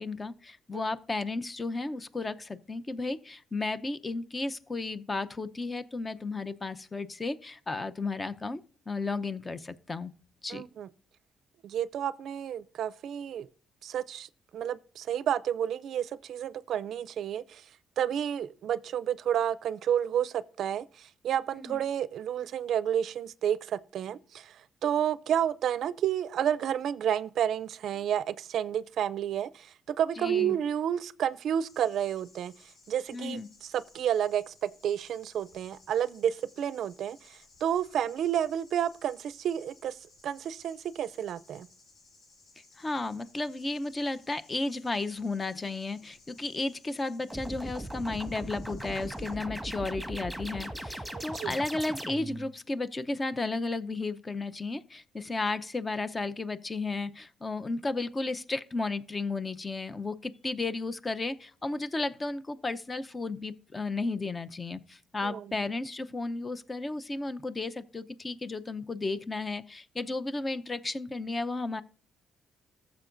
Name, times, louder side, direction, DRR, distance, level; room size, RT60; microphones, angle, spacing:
voice 1, 0.0-10.1 10.4-10.6 21.5-21.8 30.2-30.6 33.1-33.5 42.8-71.8, left 3 dB, 25° left, 0.7 m, -33 dB
voice 2, 10.5-10.9 11.6-13.5 13.8-14.3 14.5-17.6 18.0-24.5 24.8-32.5 32.9-40.0 40.2-41.7 51.1-51.6 65.2-65.5, right 9 dB, 70° right, 0.4 m, -30 dB
sound 1, 31.6-49.3, left 3 dB, 65° left, 4.7 m, -60 dB
sound 2, 47.3-52.5, right 1 dB, ahead, 1.6 m, -39 dB
14.5 x 7.0 x 2.6 m
cardioid pair, 90°, 0 cm